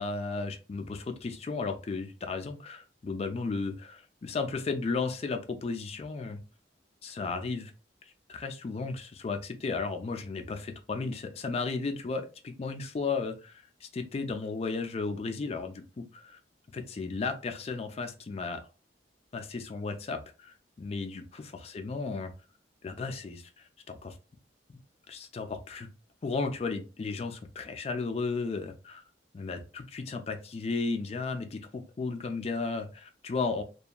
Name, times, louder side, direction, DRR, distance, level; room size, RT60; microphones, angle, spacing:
voice 1, 0.0-6.4 7.0-7.7 8.3-16.4 16.7-18.6 19.3-22.3 22.8-24.2 24.7-24.8 25.1-25.9 26.2-29.0 29.3-33.6, left 4 dB, 35° left, 6 dB, 0.3 m, -34 dB
2.8 x 2.2 x 2.4 m, 0.34 s
head